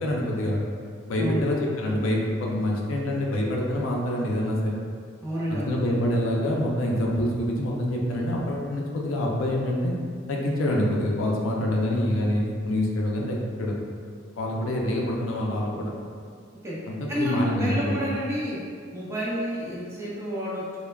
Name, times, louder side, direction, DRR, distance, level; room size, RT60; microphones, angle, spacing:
voice 1, 0.0-0.6 1.1-4.7 5.5-9.9 10.3-13.8 14.4-15.9 16.9-17.9, left 1 dB, 75° left, -2 dB, 0.4 m, -26 dB
voice 2, 1.2-1.5 5.2-5.8 16.6-16.8 17.1-18.6 18.9-20.8, equal, 15° right, -7 dB, 0.5 m, -29 dB
3.2 x 2.1 x 2.2 m, 2.1 s
head